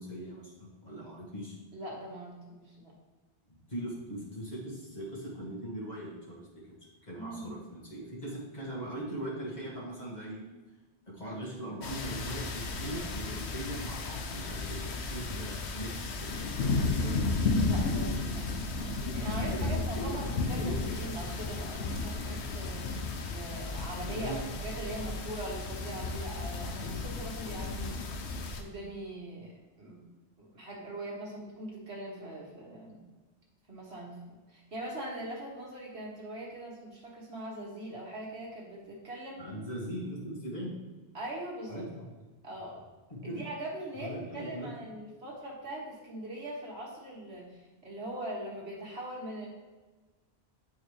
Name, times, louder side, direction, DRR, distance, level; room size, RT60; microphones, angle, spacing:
voice 1, 0.0-1.5 3.7-6.7 7.0-10.4 11.1-17.4 19.3-21.1 24.1-24.4 39.4-40.8 41.7-42.1 43.1-43.4 44.0-44.7, right 1 dB, 40° left, -6 dB, 2.0 m, -40 dB
voice 2, 1.7-2.9 7.2-7.6 17.6-18.5 19.0-28.1 28.5-29.5 29.8-30.0 30.4-33.0 33.7-34.2 34.5-39.5 41.1-41.8 42.4-42.8 43.2-49.5, right 1 dB, 75° right, -3 dB, 1.9 m, -41 dB
sound 1, 11.8-28.6, left 3 dB, 85° left, 1.0 m, -33 dB
8.9 x 4.6 x 3.2 m, 1.2 s
omnidirectional pair, 1.1 m